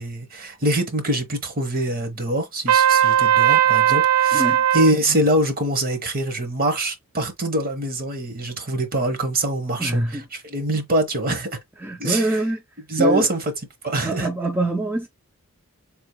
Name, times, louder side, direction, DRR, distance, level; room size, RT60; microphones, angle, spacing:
voice 1, 0.0-4.5 4.7-10.0 10.3-11.5 12.0-12.4 12.9-13.4 13.8-14.3, right 1 dB, 40° right, 1.1 m, -24 dB
Trumpet, 2.7-4.9, right 10 dB, 75° right, 0.5 m, -17 dB
voice 2, 4.3-4.6 9.8-10.3 11.8-12.6 13.0-13.3 14.0-15.1, right 1 dB, 10° right, 0.5 m, -24 dB
3.6 x 2.4 x 4.6 m
head